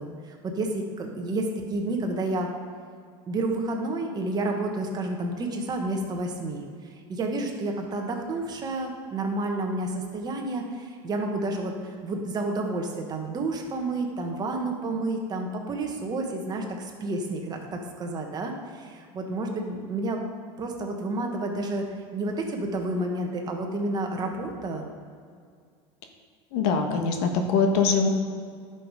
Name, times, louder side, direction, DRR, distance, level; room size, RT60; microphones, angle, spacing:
voice 1, 0.0-2.5 3.3-11.7 12.0-20.2 20.6-21.8 22.1-24.9, right 2 dB, 30° right, 2 dB, 1.4 m, -30 dB
voice 2, 26.5-28.1, left 5 dB, 70° left, 4 dB, 1.3 m, -23 dB
11.0 x 5.9 x 4.9 m, 2.1 s
supercardioid pair, 130°, 14 cm